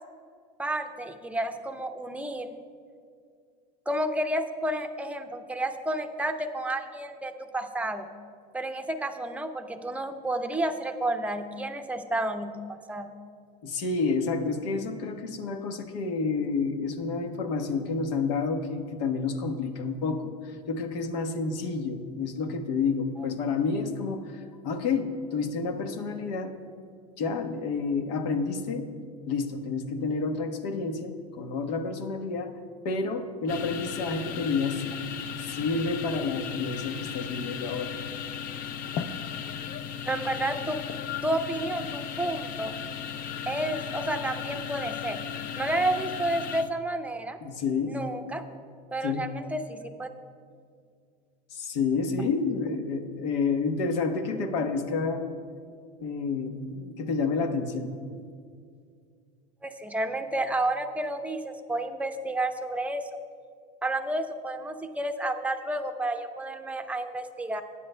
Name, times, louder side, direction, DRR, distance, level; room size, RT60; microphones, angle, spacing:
voice 1, 0.6-2.5 3.9-8.1 8.5-12.6 12.9-13.1 40.1-40.8 41.2-42.7 43.5-45.2 45.6-47.4 47.9-48.4 48.9-50.1 59.6-63.1 63.8-67.6, right 1 dB, 5° right, 6 dB, 0.7 m, -31 dB
voice 2, 13.6-26.5 27.2-28.9 29.3-32.5 32.8-34.8 35.4-38.0 47.4-48.0 49.0-49.2 51.5-55.3 56.0-57.9, left 4 dB, 75° left, 6 dB, 1.2 m, -29 dB
sound 1, 33.5-46.7, left 8 dB, 40° left, 0.6 m, -36 dB
20.0 x 9.7 x 2.2 m, 2.2 s
supercardioid pair, 120°, 21 cm